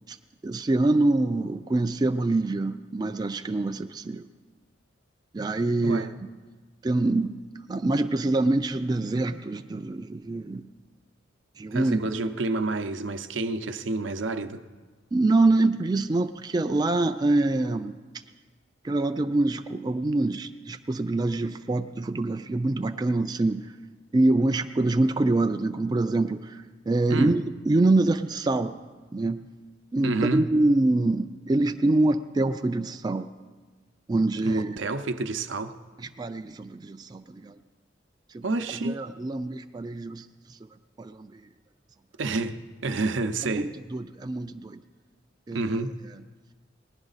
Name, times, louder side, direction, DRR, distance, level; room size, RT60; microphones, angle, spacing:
voice 1, 0.4-4.2 5.3-6.3 6.8-10.7 11.5-12.0 15.1-18.2 18.8-23.8 24.1-28.8 29.1-29.5 29.9-33.3 34.1-34.8 36.0-37.6 38.3-40.7 41.0-41.5 43.2-44.8 45.5-46.2, right 2 dB, 20° right, 0.3 m, -25 dB
voice 2, 11.7-14.6 27.1-27.3 30.0-30.4 34.5-35.7 38.4-39.0 42.2-43.7 45.5-46.0, right 3 dB, 80° right, 0.7 m, -29 dB
19.0 x 11.5 x 4.0 m
head